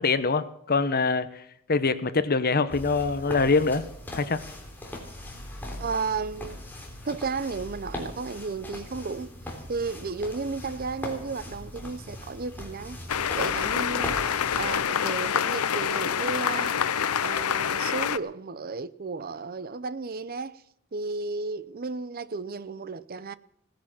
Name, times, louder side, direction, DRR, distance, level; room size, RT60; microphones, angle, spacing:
voice 1, 0.0-3.9 4.1-4.4, left 4 dB, 45° left, 1.0 m, -24 dB
sound 1, 2.7-14.8, left 1 dB, 10° left, 3.4 m, -40 dB
voice 2, 5.8-6.6 7.0-9.3 9.7-13.0 13.3-14.3 14.6-16.8 17.2-20.6 20.9-23.3, right 4 dB, 45° right, 0.6 m, -33 dB
sound 2, 13.1-18.2, left 8 dB, 85° left, 0.7 m, -26 dB
17.5 x 10.5 x 7.4 m
head